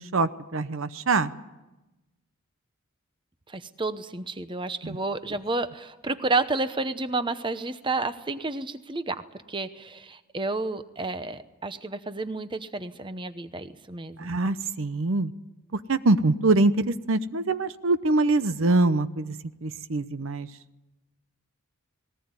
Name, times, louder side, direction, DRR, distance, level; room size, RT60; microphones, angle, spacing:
voice 1, 0.0-1.3 4.8-5.0 14.2-15.3 15.7-19.3 19.6-20.5, right 2 dB, 65° right, 13 dB, 0.8 m, -24 dB
voice 2, 3.5-9.2 9.5-14.3, right 3 dB, 20° right, 11 dB, 0.8 m, -31 dB
19.5 x 18.5 x 9.7 m, 1.1 s
head